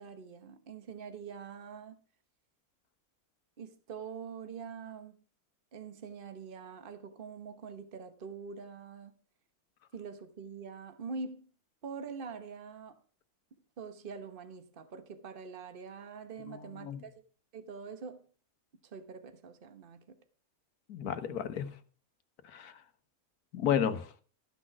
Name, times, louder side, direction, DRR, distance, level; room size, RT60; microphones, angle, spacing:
voice 1, 0.0-2.0 3.6-5.2 5.7-9.1 9.9-11.5 11.8-13.0 13.8-17.1 17.5-18.3 18.8-20.2, right 5 dB, 40° right, 1.2 m, -44 dB
voice 2, 16.5-17.0 20.9-21.7 22.4-22.8 23.5-24.1, left 9 dB, 85° left, 1.5 m, -32 dB
13.5 x 6.3 x 5.9 m
omnidirectional pair, 1.6 m